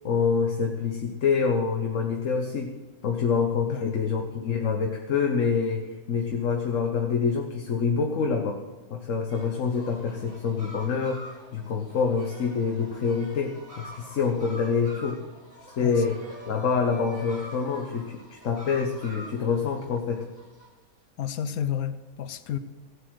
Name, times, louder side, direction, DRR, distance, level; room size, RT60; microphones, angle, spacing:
voice 1, 0.0-2.7 3.0-8.6 8.9-11.2 11.5-15.2 15.8-16.2 16.5-20.2, left 5 dB, 65° left, 3 dB, 1.4 m, -26 dB
sound 1, 9.3-20.7, equal, 65° right, 6.1 m, -46 dB
voice 2, 21.2-22.6, left 9 dB, 85° left, 11 dB, 1.2 m, -31 dB
16.0 x 8.1 x 6.3 m, 1.2 s
omnidirectional pair, 1.5 m